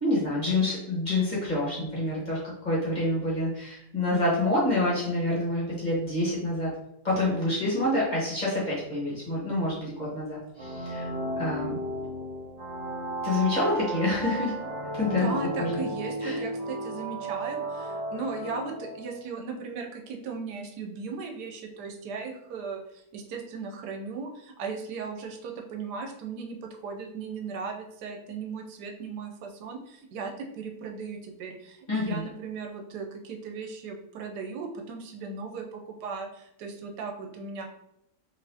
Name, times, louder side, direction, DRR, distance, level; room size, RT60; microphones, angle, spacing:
voice 1, 0.0-2.4 2.6-6.7 7.0-11.1 11.4-11.7 13.2-14.5 14.9-15.3 15.6-15.8 16.2-16.4 31.9-32.2, left 2 dB, 30° left, -6 dB, 1.3 m, -27 dB
sound 1, 10.6-19.2, right 1 dB, 65° right, 1.2 m, -34 dB
voice 2, 15.0-37.7, right 5 dB, 80° right, 2 dB, 1.2 m, -37 dB
4.1 x 2.9 x 2.7 m, 0.80 s
omnidirectional pair, 1.7 m